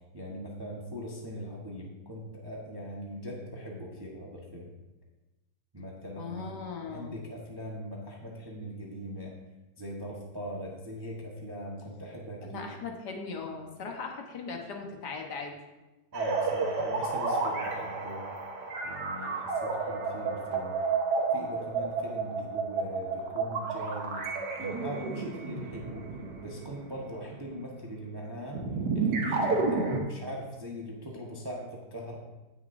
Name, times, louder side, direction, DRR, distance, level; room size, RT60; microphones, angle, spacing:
voice 1, 0.0-4.7 5.7-6.5 6.9-9.3 9.8-12.7 16.1-18.3 18.8-20.8 21.3-24.3 24.6-26.1 26.4-28.6 28.9-32.2, equal, 15° right, -2 dB, 1.1 m, -40 dB
voice 2, 6.2-7.2 12.4-15.6, left 4 dB, 70° left, 2 dB, 1.8 m, -39 dB
sound 1, 16.1-27.5 28.5-30.0, right 4 dB, 75° right, 1.8 m, -31 dB
16.0 x 6.7 x 2.7 m, 1.1 s
omnidirectional pair, 1.9 m